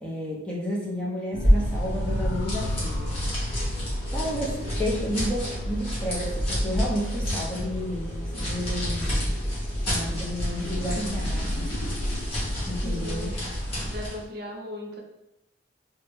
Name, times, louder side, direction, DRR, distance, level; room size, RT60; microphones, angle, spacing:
voice 1, 0.0-3.2 4.1-9.3 9.9-11.7 12.7-13.4, equal, 5° left, -4 dB, 0.5 m, -32 dB
sound 1, 1.3-13.9, left 1 dB, 60° left, 0.4 m, -36 dB
sound 2, 1.3-14.2, equal, 30° left, 1.2 m, -28 dB
voice 2, 12.8-13.4 13.9-15.0, left 1 dB, 55° right, 0 dB, 0.5 m, -37 dB
3.3 x 2.1 x 3.0 m, 0.89 s
head